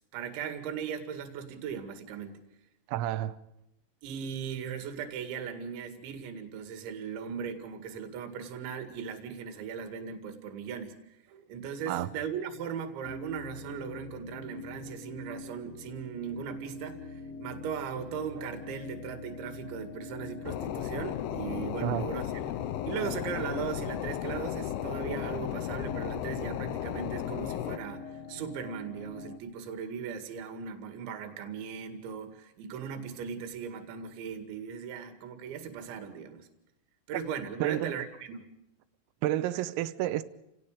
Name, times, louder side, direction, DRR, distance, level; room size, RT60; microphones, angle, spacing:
voice 1, 0.0-2.4 4.0-11.0 11.3-22.5 22.8-36.5 37.1-38.5, right 7 dB, 65° right, 4.2 m, -38 dB
voice 2, 2.9-3.4 11.9-12.1 21.8-22.1 37.6-38.0 39.2-40.2, right 13 dB, 85° right, 3.6 m, -30 dB
sound 1, 13.0-29.4, left 4 dB, 60° left, 1.7 m, -44 dB
sound 2, 20.4-27.8, left 12 dB, 85° left, 2.3 m, -35 dB
30.0 x 18.0 x 5.0 m
omnidirectional pair, 5.9 m